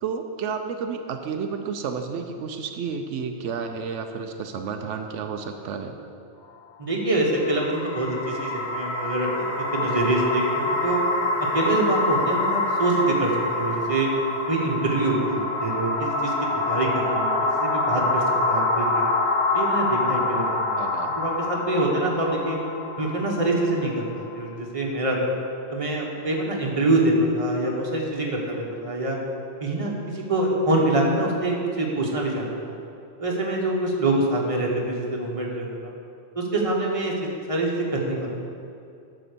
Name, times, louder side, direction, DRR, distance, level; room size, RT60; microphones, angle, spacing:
voice 1, 0.0-6.0 20.8-21.2, right 6 dB, 85° right, 5 dB, 1.0 m, -31 dB
voice 2, 6.8-11.0 11.4-14.1 14.5-16.3 16.6-19.1 19.5-20.8 21.2-22.6 23.0-25.3 25.7-29.2 29.6-32.7 33.2-35.7 36.3-38.3, right 2 dB, 30° right, -2 dB, 1.4 m, -25 dB
sound 1, 7.3-24.4, left 2 dB, 45° left, 1.1 m, -26 dB
11.0 x 4.5 x 6.8 m, 2.5 s
omnidirectional pair, 1.2 m